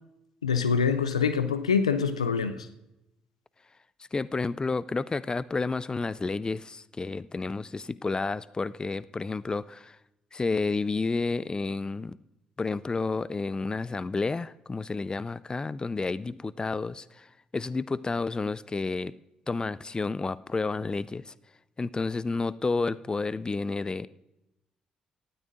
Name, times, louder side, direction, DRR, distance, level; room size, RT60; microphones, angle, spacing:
voice 1, 0.4-2.7, left 6 dB, 90° left, 12 dB, 0.4 m, -25 dB
voice 2, 4.1-10.0 10.3-12.2 12.6-19.1 19.5-21.3 21.8-24.1, left 3 dB, 25° left, 19 dB, 0.4 m, -30 dB
18.5 x 12.5 x 2.6 m, 0.92 s
figure-of-eight pair, 45°, 3 cm